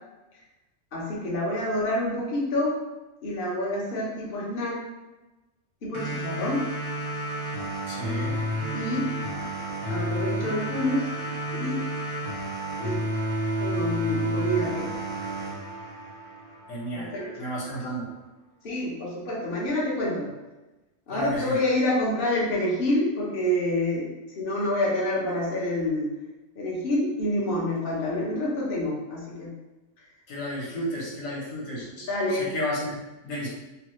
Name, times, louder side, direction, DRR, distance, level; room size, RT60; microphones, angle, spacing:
voice 1, 0.9-2.7 3.2-4.8 5.8-6.6 8.2-9.0 9.9-11.1 11.5-11.8 12.8-13.0 13.6-14.9 16.9-17.8 18.6-20.3 21.1-24.1 24.4-26.1 26.6-29.5 32.0-32.5, left 1 dB, 45° left, -5 dB, 0.9 m, -27 dB
sound 1, 5.9-16.9, right 1 dB, 45° right, 0.3 m, -31 dB
voice 2, 7.9-8.4 16.7-17.1 17.4-18.1 21.1-21.6 30.3-33.0 33.2-33.5, equal, 60° left, -6 dB, 1.4 m, -32 dB
3.1 x 2.4 x 3.0 m, 1.1 s
omnidirectional pair, 1.6 m